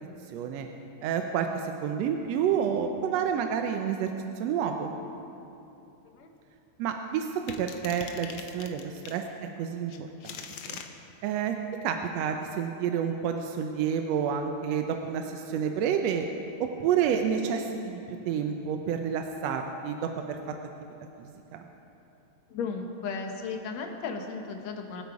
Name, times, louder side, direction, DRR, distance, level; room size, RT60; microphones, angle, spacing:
voice 1, 0.3-0.7 1.0-4.1 4.4-4.9 6.8-7.3 7.6-9.2 9.6-10.8 11.2-11.5 11.8-16.3 16.8-20.4 21.2-21.6, right 8 dB, 75° right, 5 dB, 1.7 m, -29 dB
sound 1, 7.5-9.2 9.9-10.9, left 7 dB, 85° left, 1.1 m, -41 dB
voice 2, 22.5-25.0, left 5 dB, 65° left, 3 dB, 2.3 m, -35 dB
23.5 x 8.2 x 4.8 m, 2.8 s
omnidirectional pair, 3.4 m